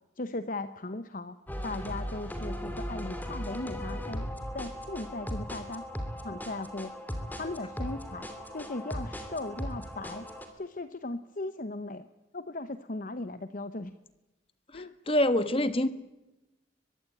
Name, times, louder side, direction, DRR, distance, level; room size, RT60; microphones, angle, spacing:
voice 1, 0.2-1.4 1.6-4.3 4.5-5.9 6.2-6.9 7.4-8.3 8.5-10.3 10.6-12.1 12.3-13.9 14.7-14.9, left 2 dB, 45° left, 11 dB, 0.8 m, -37 dB
sound 1, 1.5-10.5, equal, 10° left, 2.7 m, -38 dB
voice 2, 14.7-15.9, left 1 dB, 30° left, 12 dB, 1.4 m, -26 dB
23.5 x 22.0 x 8.6 m, 1.0 s
head